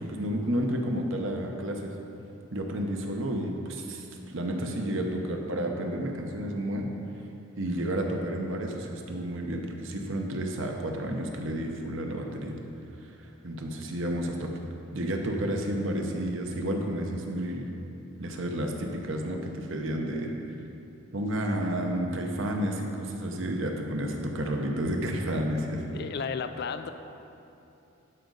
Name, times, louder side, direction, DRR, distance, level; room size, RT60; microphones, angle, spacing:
voice 1, 0.0-1.9 2.5-6.9 7.6-12.6 13.4-14.5 14.9-17.7 18.2-20.3 21.1-25.9, right 1 dB, 60° right, 2 dB, 0.9 m, -31 dB
voice 2, 25.9-26.9, left 5 dB, 50° left, 9 dB, 0.3 m, -33 dB
12.0 x 5.2 x 4.0 m, 2.8 s
head